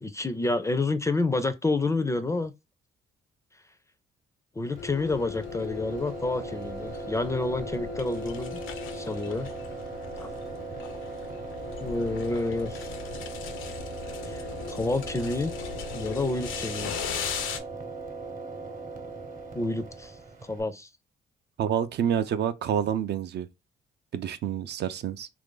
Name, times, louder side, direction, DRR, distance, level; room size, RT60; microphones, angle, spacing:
voice 1, 0.0-2.5 4.6-8.6 8.9-9.5 10.2-10.3 11.8-12.9 14.1-15.5 15.9-16.9 19.5-20.2 20.5-20.9, left 2 dB, 15° left, 0.4 m, -29 dB
sound 1, 4.6-20.6, right 3 dB, 40° right, 0.9 m, -39 dB
sound 2, 4.8-17.6, left 8 dB, 85° left, 0.6 m, -38 dB
voice 2, 21.6-23.5 24.1-25.3, right 9 dB, 60° right, 0.4 m, -28 dB
2.9 x 2.5 x 3.7 m
cardioid pair, 90°, 20 cm